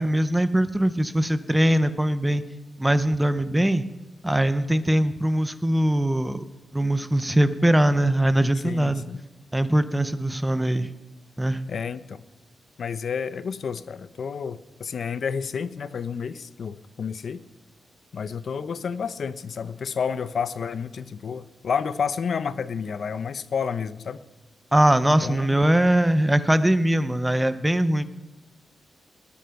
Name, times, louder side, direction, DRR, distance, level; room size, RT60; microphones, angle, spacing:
voice 1, 0.0-2.4 2.8-3.9 4.2-6.4 6.7-9.0 9.5-10.9 11.4-11.6 24.7-28.0, right 1 dB, 5° right, 12 dB, 0.6 m, -21 dB
voice 2, 8.6-9.2 11.7-12.2 12.8-17.4 18.1-24.2 25.2-25.6, left 6 dB, 55° left, 14 dB, 0.6 m, -30 dB
20.5 x 8.5 x 5.8 m, 1.1 s
wide cardioid pair, 155°, 0 cm